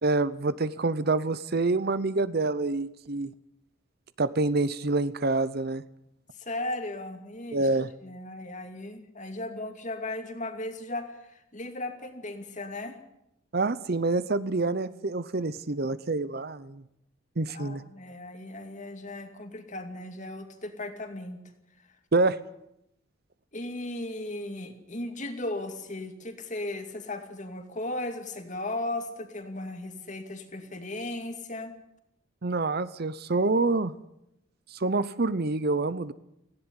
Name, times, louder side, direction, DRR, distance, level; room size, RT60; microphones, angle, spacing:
voice 1, 0.0-3.3 4.2-5.8 7.5-7.9 13.5-16.8 17.4-17.8 22.1-22.4 32.4-33.9 34.7-36.1, right 3 dB, 45° right, 16 dB, 0.7 m, -27 dB
voice 2, 6.3-7.7 8.0-13.0 17.5-21.4 23.5-31.7, left 2 dB, 35° left, 7 dB, 2.5 m, -36 dB
17.5 x 16.5 x 9.7 m, 0.80 s
head